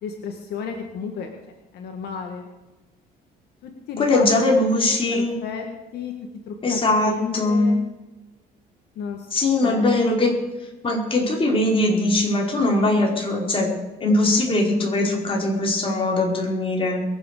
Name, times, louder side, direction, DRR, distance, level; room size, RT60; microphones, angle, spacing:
voice 1, 0.0-2.5 3.6-4.3 4.7-4.8 5.1-5.7 5.9-6.1 6.5-6.8 7.0-7.8 9.0-9.3 9.6-10.0, left 6 dB, 75° left, 3 dB, 2.0 m, -33 dB
voice 2, 4.0-5.3 6.6-7.7 9.3-10.4 10.8-13.7 14.0-17.0, left 2 dB, 30° left, -1 dB, 5.0 m, -21 dB
22.0 x 8.2 x 6.8 m, 1.1 s
cardioid pair, 110°, 17 cm